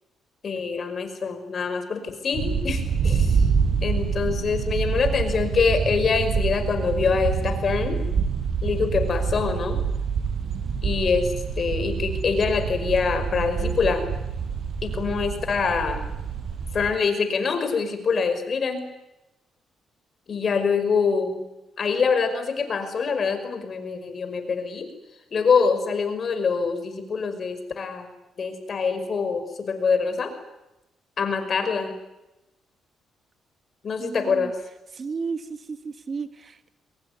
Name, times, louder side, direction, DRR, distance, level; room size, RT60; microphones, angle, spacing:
voice 1, 0.4-3.4 3.8-8.0 8.6-9.8 10.8-14.1 14.8-16.0 16.7-18.8 20.3-21.4 21.8-24.9 25.3-28.1 28.4-30.4 31.2-32.0 33.8-34.6, left 5 dB, 45° left, 9 dB, 5.5 m, -25 dB
sound 1, 2.3-16.9, right 6 dB, 60° right, 5.2 m, -26 dB
voice 2, 34.0-34.5 34.9-36.7, right 5 dB, 40° right, 11 dB, 1.5 m, -33 dB
23.0 x 22.0 x 9.7 m, 0.96 s
cardioid pair, 90°, 0 cm